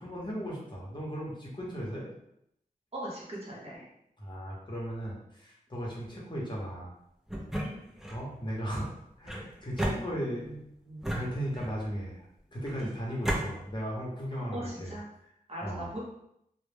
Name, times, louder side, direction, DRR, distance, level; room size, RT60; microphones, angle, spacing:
voice 1, 0.0-2.1 4.2-6.9 8.1-8.8 9.2-15.0 15.6-15.9, equal, 30° left, -4 dB, 0.8 m, -37 dB
voice 2, 2.9-3.9 7.6-7.8 12.8-13.0 14.4-15.1 15.5-16.0, right 1 dB, 40° right, -5 dB, 0.9 m, -40 dB
sound 1, 7.3-8.2 9.2-10.5 11.0-11.9 12.6-13.4, right 1 dB, 5° right, 0.4 m, -34 dB
2.2 x 2.0 x 3.3 m, 0.77 s
wide cardioid pair, 75°, 15 cm